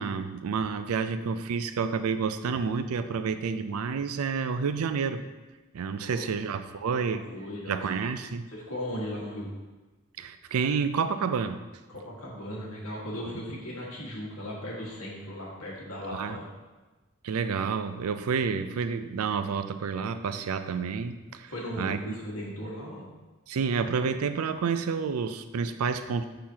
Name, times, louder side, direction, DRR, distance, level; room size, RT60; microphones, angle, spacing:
voice 1, 0.0-5.2 5.7-7.3 7.7-8.5 10.2-11.6 16.1-16.4 17.2-21.5 21.8-22.0 23.5-26.2, right 5 dB, 80° right, 10 dB, 0.4 m, -29 dB
voice 2, 6.0-6.5 7.1-7.8 8.5-9.5 11.9-16.5 21.5-23.1, equal, 75° left, -4 dB, 1.7 m, -37 dB
6.6 x 5.8 x 2.8 m, 1.2 s
head